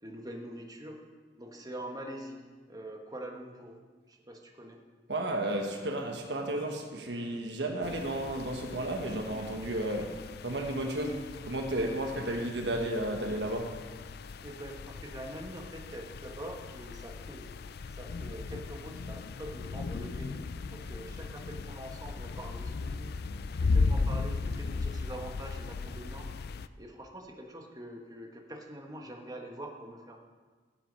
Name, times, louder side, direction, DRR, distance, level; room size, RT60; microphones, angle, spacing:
voice 1, 0.0-1.0 1.4-2.4 2.7-3.8 4.1-4.8 7.1-7.3 12.0-12.2 14.4-17.5 17.9-23.2 23.5-26.3 26.8-30.2, right 1 dB, 20° right, 2 dB, 1.4 m, -44 dB
voice 2, 5.1-13.8, right 1 dB, 70° right, 3 dB, 1.3 m, -33 dB
sound 1, 7.8-26.7, left 4 dB, 60° left, 0.4 m, -36 dB
14.0 x 7.5 x 5.4 m, 1.4 s
head